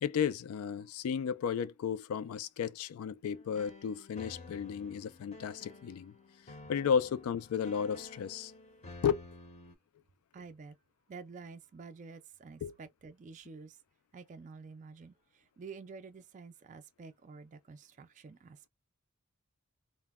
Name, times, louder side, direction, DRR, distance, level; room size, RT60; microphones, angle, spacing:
voice 1, 0.0-6.1 6.7-8.5 9.0-9.2 12.6-12.7, left 7 dB, 75° left, 0.3 m, -33 dB
sound 1, 3.2-9.7, left 3 dB, 30° left, 0.6 m, -52 dB
voice 2, 10.3-10.8 11.1-13.8 14.1-18.7, right 4 dB, 35° right, 0.3 m, -49 dB
2.1 x 2.0 x 3.4 m
head